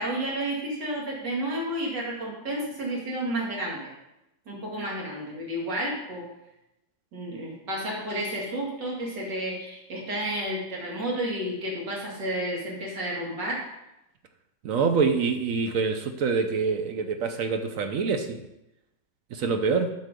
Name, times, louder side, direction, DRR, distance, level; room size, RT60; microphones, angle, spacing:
voice 1, 0.0-3.9 4.5-6.3 7.1-13.6, right 1 dB, 80° right, -3 dB, 2.9 m, -31 dB
voice 2, 14.6-18.4 19.3-19.9, right 5 dB, 60° right, 7 dB, 0.9 m, -25 dB
8.3 x 6.3 x 5.0 m, 0.90 s
omnidirectional pair, 1.9 m